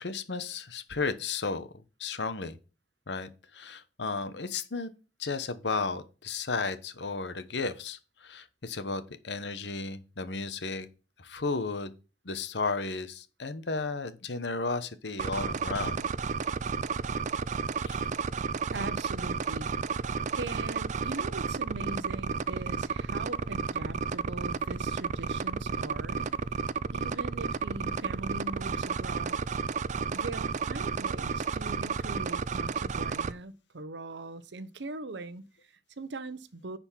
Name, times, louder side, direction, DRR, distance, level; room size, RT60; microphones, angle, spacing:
voice 1, 0.0-1.7 2.0-2.6 3.1-4.9 5.2-10.9 11.2-11.9 12.2-16.1 17.8-18.1, left 4 dB, 80° left, 1.1 m, -34 dB
sound 1, 15.2-33.3, right 5 dB, 45° right, 0.4 m, -32 dB
voice 2, 18.7-19.7 20.4-26.3 26.9-29.4 30.1-36.8, right 2 dB, 85° right, 0.9 m, -41 dB
10.0 x 4.4 x 5.7 m
head